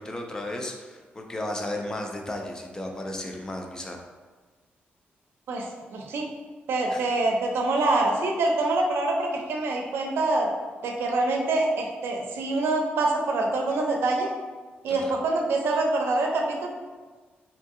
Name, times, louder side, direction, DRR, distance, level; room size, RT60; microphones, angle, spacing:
voice 1, 0.0-4.0 6.9-7.0 14.9-15.1, left 1 dB, 15° left, 2 dB, 0.3 m, -34 dB
voice 2, 5.5-6.3 6.7-10.5 10.8-14.3 14.8-16.7, right 2 dB, 90° right, 1 dB, 0.5 m, -25 dB
2.7 x 2.7 x 3.6 m, 1.4 s
wide cardioid pair, 165°, 4 cm